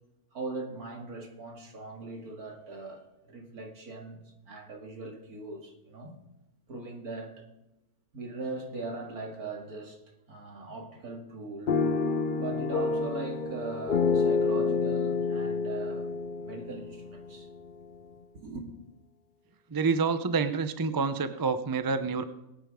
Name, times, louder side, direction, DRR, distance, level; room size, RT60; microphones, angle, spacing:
voice 1, 0.3-6.2 6.7-7.5 8.1-10.0 10.3-11.8 12.4-17.5 18.3-18.7, right 3 dB, 80° right, 2.6 m, -40 dB
sound 1, 11.7-17.7, left 4 dB, 45° left, 0.7 m, -28 dB
voice 2, 19.7-22.2, right 4 dB, 30° right, 0.3 m, -28 dB
21.5 x 9.1 x 3.7 m
omnidirectional pair, 1.6 m